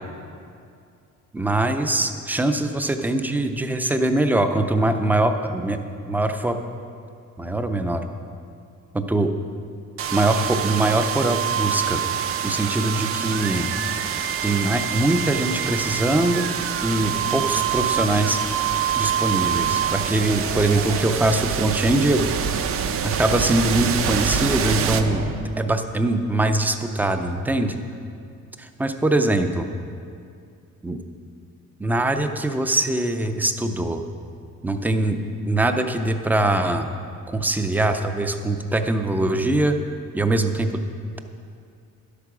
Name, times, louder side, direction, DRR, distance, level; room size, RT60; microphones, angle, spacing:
voice 1, 1.3-5.8 6.1-6.6 7.4-8.0 8.9-9.3 10.1-12.0 12.4-13.7 14.4-16.5 16.8-18.4 19.0-22.3 23.0-25.3 25.6-27.8 28.6-29.7 30.8-31.0 31.8-34.0 34.6-36.9 37.3-39.8 40.1-40.8, right 2 dB, 5° right, 7 dB, 0.4 m, -22 dB
sound 1, 10.0-25.8, right 8 dB, 45° right, 0.6 m, -25 dB
11.5 x 8.3 x 6.0 m, 2.4 s
cardioid pair, 170°, 31 cm